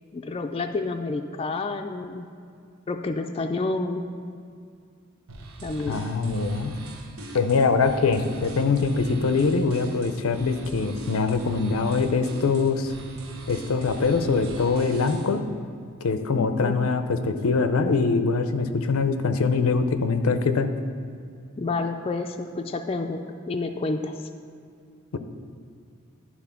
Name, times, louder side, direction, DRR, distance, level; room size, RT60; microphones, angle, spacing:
voice 1, 0.1-2.3 2.9-4.1 5.6-6.0 16.3-16.8 21.6-24.2, left 3 dB, 25° left, 5 dB, 0.3 m, -29 dB
sound 1, 5.3-15.4, right 2 dB, 80° right, 1.1 m, -41 dB
voice 2, 5.9-6.7 7.3-12.9 13.5-15.4 16.0-20.7 25.1-25.2, left 4 dB, 85° left, 9 dB, 0.6 m, -23 dB
11.5 x 4.2 x 5.7 m, 2.3 s
head